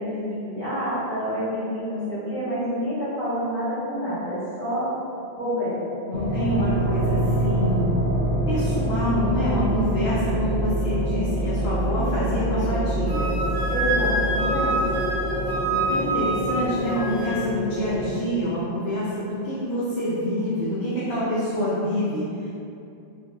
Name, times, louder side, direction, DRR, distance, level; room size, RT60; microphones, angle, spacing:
voice 1, 0.0-4.9 5.3-5.8 11.9-12.3 13.7-14.8, equal, 60° left, -14 dB, 1.7 m, -28 dB
voice 2, 6.1-7.9 8.5-13.3 15.7-22.5, equal, 75° left, -9 dB, 0.9 m, -26 dB
sound 1, 6.1-18.1, right 1 dB, 15° right, 0.6 m, -26 dB
Wind instrument woodwind instrument, 13.1-17.4, right 2 dB, 70° right, 1.2 m, -27 dB
3.8 x 2.5 x 2.3 m, 2.6 s
omnidirectional pair, 1.1 m